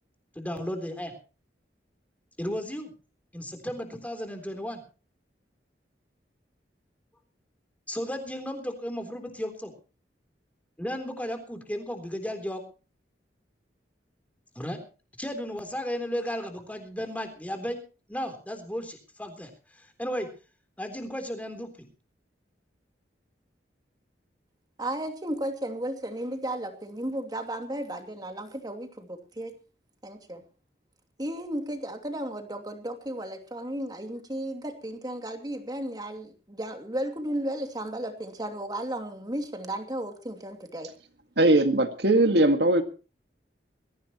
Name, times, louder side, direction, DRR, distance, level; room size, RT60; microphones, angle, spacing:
voice 1, 0.4-1.1 2.4-2.9 3.3-4.8 7.9-9.7 10.8-12.6 14.6-14.8 15.2-17.8 18.1-20.3 20.8-21.7, equal, 10° left, 5 dB, 3.7 m, -34 dB
voice 2, 24.8-29.5 30.0-30.4 31.2-40.9, right 1 dB, 25° right, 5 dB, 2.7 m, -34 dB
voice 3, 41.4-42.8, right 1 dB, 65° right, 7 dB, 2.0 m, -20 dB
22.0 x 16.0 x 3.1 m, 0.36 s
head